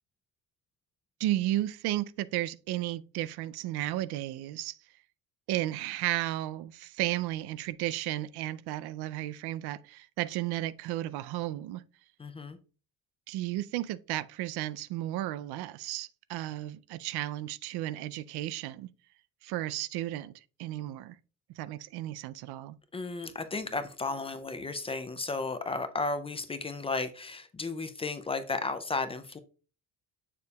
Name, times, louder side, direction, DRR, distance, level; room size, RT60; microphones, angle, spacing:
voice 1, 1.2-4.8 5.5-11.8 13.3-18.9 19.4-21.2 21.6-22.8, right 15 dB, 90° right, 0.5 m, -33 dB
voice 2, 12.2-12.6 22.9-29.4, left 3 dB, 15° left, 0.3 m, -34 dB
6.9 x 6.7 x 2.3 m
cardioid pair, 170°, 37 cm